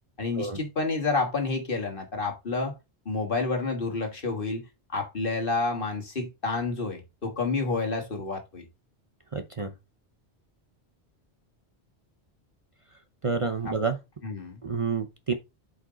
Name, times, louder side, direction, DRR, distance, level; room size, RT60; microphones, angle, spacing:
voice 1, 0.2-2.7 3.1-4.6 4.9-8.7 13.7-13.8 14.2-14.6, left 3 dB, 55° left, 1.8 m, -29 dB
voice 2, 9.3-9.7 13.2-14.0 14.6-15.3, right 4 dB, 35° right, 0.8 m, -29 dB
8.0 x 5.1 x 3.8 m
omnidirectional pair, 1.1 m